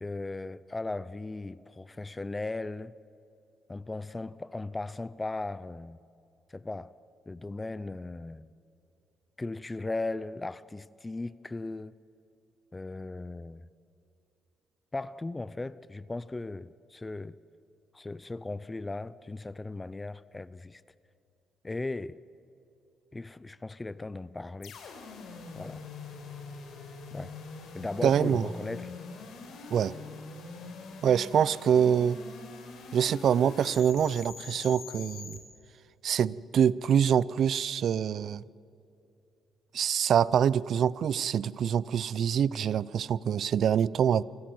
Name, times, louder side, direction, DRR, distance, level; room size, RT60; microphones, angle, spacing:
voice 1, 0.0-2.9 3.7-6.0 6.5-6.9 7.3-8.5 9.4-11.9 12.7-13.7 14.9-17.3 17.9-20.8 21.6-22.2 23.1-24.7 25.6-25.8 27.1-27.3 27.7-29.0, left 2 dB, 20° left, 0.5 m, -37 dB
sound 1, 24.6-35.4, left 4 dB, 75° left, 4.1 m, -44 dB
voice 2, 28.0-28.5 29.7-29.9 31.0-32.2 32.9-35.4 36.0-38.4 39.7-44.2, right 8 dB, 65° right, 0.5 m, -25 dB
25.5 x 14.5 x 7.8 m
cardioid pair, 90°, 0 cm